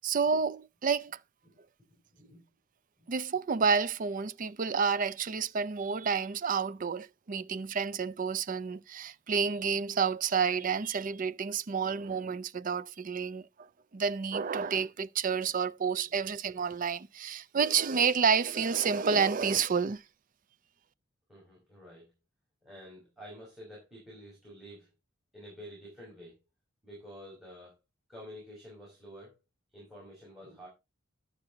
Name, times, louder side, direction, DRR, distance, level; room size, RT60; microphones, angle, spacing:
voice 1, 0.0-1.2 3.1-13.7 13.9-20.0, right 6 dB, 40° right, 0.4 m, -29 dB
voice 2, 21.3-22.1 22.6-24.9 25.3-26.4 26.8-27.8 28.1-29.3 29.7-30.7, equal, ahead, 5.2 m, -49 dB
11.5 x 7.3 x 3.9 m
head